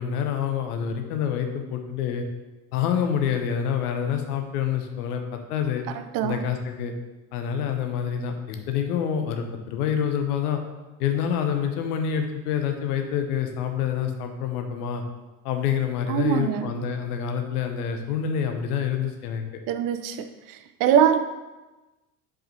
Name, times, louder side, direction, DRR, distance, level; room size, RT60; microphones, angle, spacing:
voice 1, 0.0-2.3 2.7-5.8 6.2-6.9 7.3-10.6 11.0-15.0 15.4-19.4, left 8 dB, 65° left, 5 dB, 1.0 m, -27 dB
voice 2, 5.9-6.4 16.1-16.8 19.7-21.2, right 9 dB, 45° right, 9 dB, 0.6 m, -23 dB
7.7 x 4.9 x 2.9 m, 1.1 s
hypercardioid pair, 70°, 48 cm